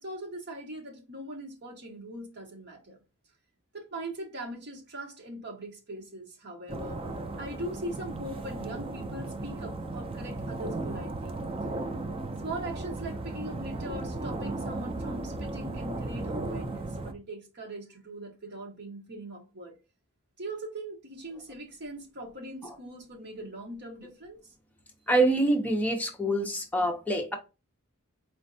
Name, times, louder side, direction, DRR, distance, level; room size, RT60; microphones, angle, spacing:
voice 1, 0.0-3.0 3.7-7.0 7.4-11.4 12.4-19.7 20.4-24.4, right 1 dB, 50° right, 1.1 m, -40 dB
sound 1, 6.7-17.1, right 2 dB, 25° right, 0.4 m, -35 dB
voice 2, 25.1-27.4, right 1 dB, 5° left, 0.7 m, -25 dB
4.3 x 3.1 x 2.6 m
head